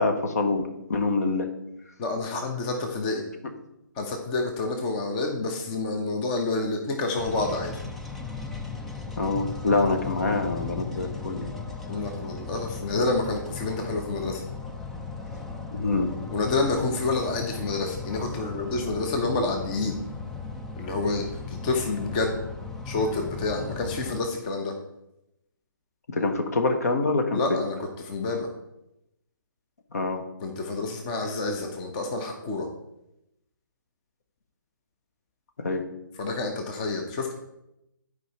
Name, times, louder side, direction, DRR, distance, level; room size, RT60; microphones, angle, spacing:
voice 1, 0.0-1.5 9.2-11.5 15.7-16.1 26.1-27.6 29.9-30.2 35.6-35.8, left 3 dB, 50° left, 5 dB, 1.0 m, -25 dB
voice 2, 2.0-3.2 4.0-7.7 11.9-14.4 16.3-20.0 20.8-22.4 22.9-24.7 27.3-28.5 30.4-32.7 36.2-37.3, left 3 dB, 25° left, 3 dB, 0.8 m, -28 dB
sound 1, 7.2-24.2, left 4 dB, ahead, 0.3 m, -37 dB
11.0 x 4.8 x 4.2 m, 0.88 s
figure-of-eight pair, 135°, 11 cm